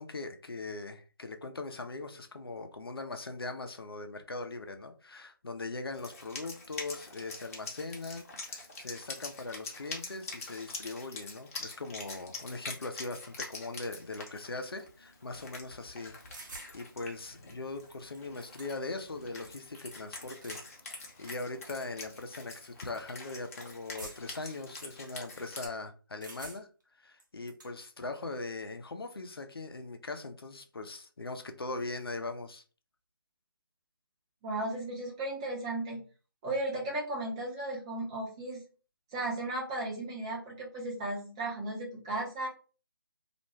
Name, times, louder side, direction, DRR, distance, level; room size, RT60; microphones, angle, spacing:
voice 1, 0.0-16.1 16.4-20.6 20.9-26.7 27.0-32.6, left 3 dB, 85° left, 0.6 m, -40 dB
Wind instrument woodwind instrument, 5.9-25.7, left 3 dB, 40° left, 0.7 m, -45 dB
sound 1, 16.3-16.7 17.8-17.9 18.1-19.0 20.2-20.7 21.3-21.4 22.2-22.4 24.0-24.4 26.2-26.8 27.2-27.7, right 2 dB, 55° right, 0.8 m, -47 dB
voice 2, 34.4-36.0 36.4-38.6 39.1-42.5, right 2 dB, 15° right, 0.4 m, -35 dB
2.4 x 2.1 x 3.1 m
figure-of-eight pair, 160°, 12 cm